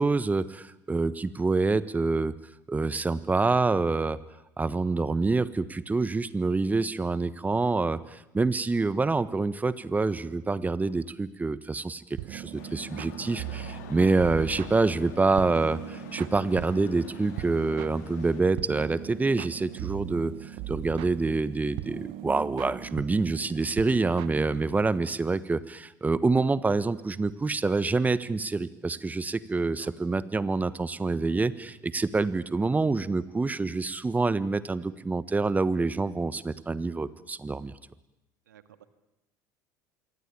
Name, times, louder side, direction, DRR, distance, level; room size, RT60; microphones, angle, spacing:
voice 1, 0.0-2.3 2.7-4.2 4.6-37.7, right 3 dB, 15° right, 16 dB, 1.4 m, -27 dB
sound 1, 12.2-25.0, right 15 dB, 60° right, 1.1 m, -40 dB
sound 2, 12.5-18.4, left 9 dB, 70° left, 3.6 m, -45 dB
voice 2, 38.5-38.8, right 10 dB, 80° right, 12 dB, 1.8 m, -53 dB
26.0 x 23.5 x 8.7 m, 0.89 s
hypercardioid pair, 70°, 10 cm